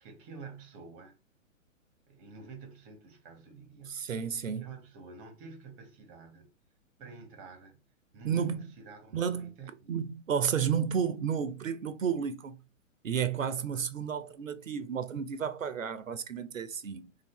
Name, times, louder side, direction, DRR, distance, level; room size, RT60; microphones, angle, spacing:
voice 1, 0.0-1.2 2.1-4.1 4.5-6.5 7.0-7.8 8.1-9.9, right 4 dB, 20° right, 0.8 m, -49 dB
voice 2, 3.9-4.7 8.2-8.6 9.1-9.5 9.9-12.6 13.0-17.1, right 7 dB, 75° right, 0.6 m, -32 dB
3.7 x 2.7 x 3.5 m
figure-of-eight pair, 120°, 40 cm